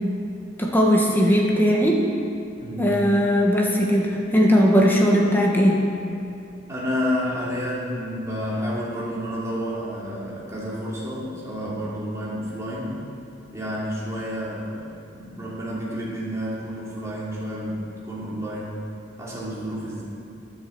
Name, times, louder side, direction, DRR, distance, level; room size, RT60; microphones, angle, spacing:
voice 1, 0.6-2.0 2.8-5.8, equal, 10° left, -2 dB, 1.4 m, -19 dB
voice 2, 2.6-3.0 6.7-12.9 13.5-14.8 15.1-18.8 19.2-20.0, equal, 15° right, -7 dB, 2.9 m, -30 dB
10.0 x 7.3 x 7.6 m, 2.9 s
head